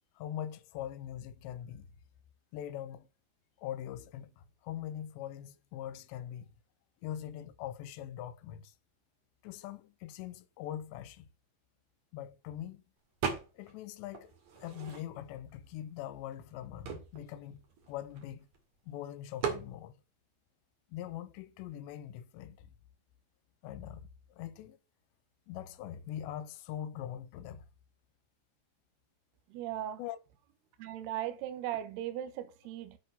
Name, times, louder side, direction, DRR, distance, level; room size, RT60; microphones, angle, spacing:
voice 1, 0.2-1.9 2.5-3.1 3.6-6.5 7.0-8.7 9.4-11.3 12.1-12.8 13.5-18.5 18.9-19.9 20.9-22.7 23.6-24.8 25.5-27.7 30.0-30.2, left 11 dB, 85° left, 2.9 m, -42 dB
sound 1, 13.2-13.8 14.1-15.4 16.0-16.1 16.3-18.6 19.4-19.7, right 6 dB, 50° right, 3.0 m, -38 dB
voice 2, 29.5-30.0 30.8-33.0, right 12 dB, 70° right, 3.0 m, -38 dB
8.2 x 7.4 x 5.3 m
omnidirectional pair, 5.3 m